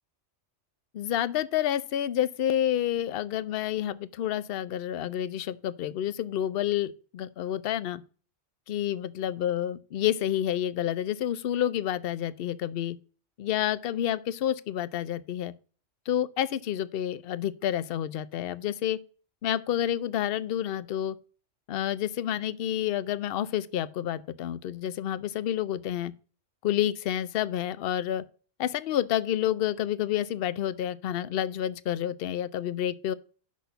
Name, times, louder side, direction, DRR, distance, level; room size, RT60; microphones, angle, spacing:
voice 1, 0.9-8.0 8.7-13.0 13.4-15.5 16.1-19.0 19.4-21.1 21.7-26.1 26.6-28.2 28.6-33.1, left 11 dB, 60° left, 0.7 m, -29 dB
6.3 x 6.2 x 6.7 m
omnidirectional pair, 1.3 m